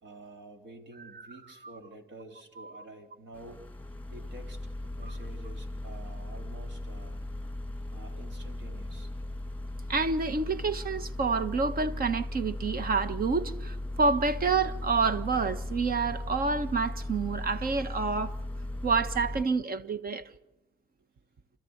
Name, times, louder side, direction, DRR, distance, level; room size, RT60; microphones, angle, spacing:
voice 1, 0.0-3.6 4.1-7.3 7.9-9.1, right 2 dB, 65° right, 4 dB, 3.9 m, -49 dB
sound 1, 3.3-19.4, left 1 dB, 10° left, 1.8 m, -37 dB
voice 2, 9.9-18.3 18.8-20.2, right 4 dB, 50° right, 11 dB, 1.5 m, -28 dB
29.5 x 13.5 x 8.1 m, 0.93 s
cardioid pair, 90°, 20 cm